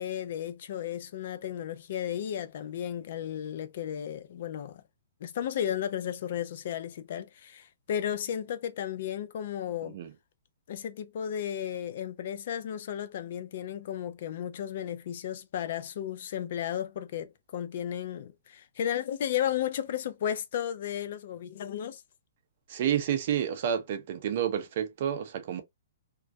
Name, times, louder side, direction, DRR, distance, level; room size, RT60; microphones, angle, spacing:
voice 1, 0.0-4.8 5.2-10.0 10.7-22.0, left 10 dB, 45° left, 0.3 m, -34 dB
voice 2, 9.8-10.1 22.7-25.6, right 9 dB, 40° right, 0.5 m, -30 dB
2.2 x 2.2 x 2.5 m
hypercardioid pair, 170°, 0 cm